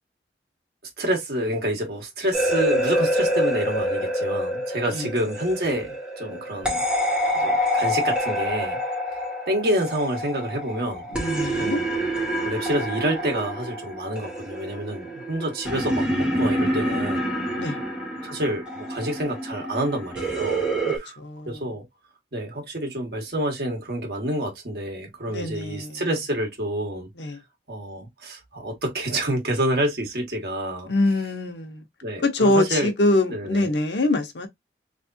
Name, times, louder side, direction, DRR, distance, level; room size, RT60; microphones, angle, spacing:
voice 1, 1.0-8.8 9.1-11.1 11.5-11.9 12.4-17.3 18.2-21.2 21.4-21.8 22.3-27.1 27.7-30.9 32.0-32.9 33.3-33.7, right 1 dB, 60° right, 1.5 m, -28 dB
sound 1, 2.3-21.0, equal, 5° right, 1.4 m, -27 dB
voice 2, 11.1-11.8 17.6-17.8 21.2-21.6 25.3-26.0 27.2-27.4 30.9-31.8 32.2-34.5, left 2 dB, 80° left, 0.9 m, -24 dB
3.5 x 3.3 x 2.7 m
head